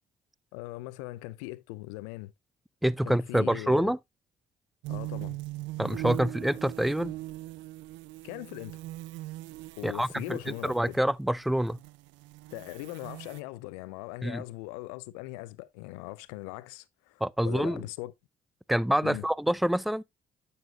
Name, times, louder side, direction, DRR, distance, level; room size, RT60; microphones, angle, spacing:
voice 1, 0.5-2.3 3.0-3.9 4.9-5.4 8.2-8.8 9.8-11.0 12.5-18.1 19.0-19.3, left 19 dB, 85° left, 0.5 m, -40 dB
voice 2, 2.8-4.0 5.8-7.1 9.8-11.8 14.2-14.4 17.2-17.8 18.7-20.0, right 1 dB, ahead, 0.3 m, -27 dB
sound 1, 4.8-11.0 11.6-13.4, right 18 dB, 75° right, 0.4 m, -40 dB
9.3 x 7.0 x 2.3 m
hypercardioid pair, 50°, 19 cm